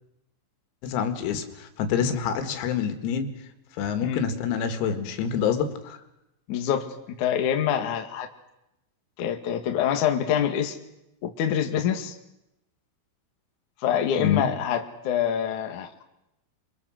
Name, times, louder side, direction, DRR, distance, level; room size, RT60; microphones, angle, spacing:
voice 1, 0.8-3.3 3.8-6.0 14.2-14.5, left 7 dB, 85° left, 7 dB, 4.8 m, -27 dB
voice 2, 6.5-6.9 7.2-8.3 9.2-10.8 11.2-12.1 13.8-16.0, left 9 dB, 55° left, 5 dB, 2.4 m, -25 dB
28.5 x 24.5 x 6.5 m, 0.88 s
omnidirectional pair, 6.0 m